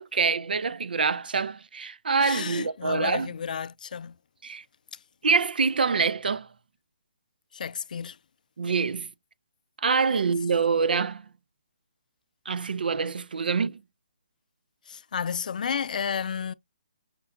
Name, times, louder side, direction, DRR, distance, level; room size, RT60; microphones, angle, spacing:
voice 1, 0.0-3.3 4.4-4.6 5.2-6.5 8.6-9.1 9.8-11.2 12.5-13.8, right 5 dB, 80° right, 0.5 m, -25 dB
voice 2, 2.2-4.1 4.9-5.0 7.5-8.2 10.1-10.2 14.9-16.5, left 7 dB, 60° left, 0.3 m, -32 dB
5.9 x 2.2 x 3.7 m
hypercardioid pair, 160°, 5 cm